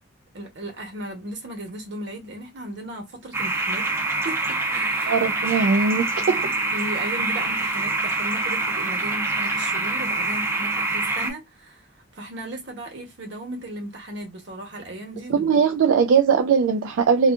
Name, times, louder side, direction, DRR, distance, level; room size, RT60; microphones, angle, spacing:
voice 1, 0.3-3.9 4.2-5.2 6.3-11.9 12.1-15.5, right 1 dB, 60° right, 1.0 m, -36 dB
sound 1, 3.3-11.3, right 2 dB, 15° right, 0.4 m, -25 dB
voice 2, 5.1-6.4 15.3-17.3, right 6 dB, 80° right, 0.3 m, -20 dB
2.6 x 2.4 x 2.4 m
head